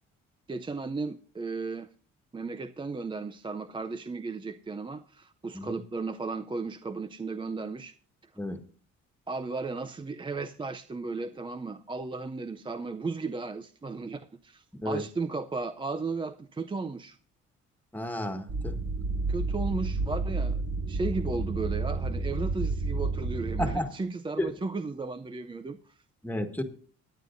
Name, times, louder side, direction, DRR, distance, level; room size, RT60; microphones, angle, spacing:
voice 1, 0.5-1.9 2.3-7.9 9.3-17.2 19.3-20.6 20.9-25.8, right 3 dB, 15° right, 0.5 m, -35 dB
voice 2, 14.7-15.0 17.9-18.8 23.6-23.9 24.4-24.5 26.2-26.6, left 1 dB, 5° left, 1.6 m, -32 dB
sound 1, 18.5-23.7, right 3 dB, 60° right, 2.4 m, -30 dB
25.5 x 9.3 x 2.6 m
cardioid pair, 90°, 30 cm